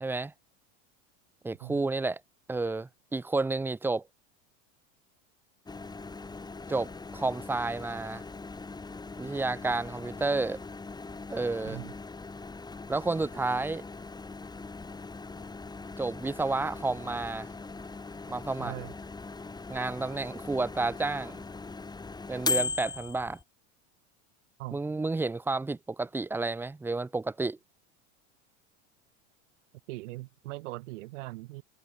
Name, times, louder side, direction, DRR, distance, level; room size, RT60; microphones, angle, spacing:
voice 1, 0.0-0.3 1.4-2.2 2.5-4.0 6.7-8.2 9.2-10.6 11.3-11.8 12.9-13.9 16.0-17.5 18.3-18.7 19.7-21.4 22.3-23.4 24.7-27.6, right 3 dB, 5° right, 0.5 m, -31 dB
Microwave oven, 5.7-23.4, left 3 dB, 10° left, 2.8 m, -39 dB
voice 2, 18.6-18.9 24.6-24.8 29.9-31.6, right 20 dB, 80° right, 2.3 m, -40 dB
supercardioid pair, 125°, 36 cm